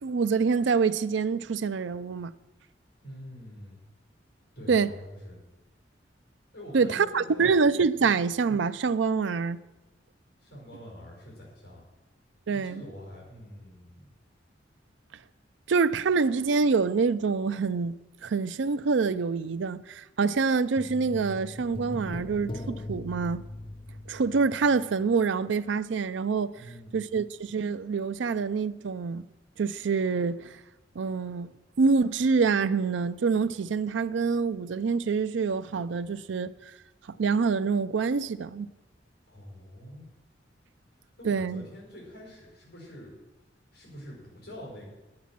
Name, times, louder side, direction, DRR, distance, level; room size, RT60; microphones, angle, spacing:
voice 1, 0.0-2.3 4.7-4.9 6.7-9.6 12.5-12.8 15.7-23.4 24.1-26.6 26.9-29.3 29.6-30.5 31.0-31.5 31.8-36.5 37.2-38.7 41.2-41.6, right 5 dB, 70° right, 0.4 m, -26 dB
voice 2, 3.0-3.8 4.5-5.4 6.5-7.4 8.0-8.2 10.4-11.9 12.6-14.1 26.5-27.0 39.3-40.1 41.2-43.2 43.7-44.9, equal, 60° left, 4.8 m, -45 dB
sound 1, 20.8-25.2 25.5-25.6, left 1 dB, 25° left, 0.6 m, -40 dB
9.4 x 8.7 x 7.4 m
head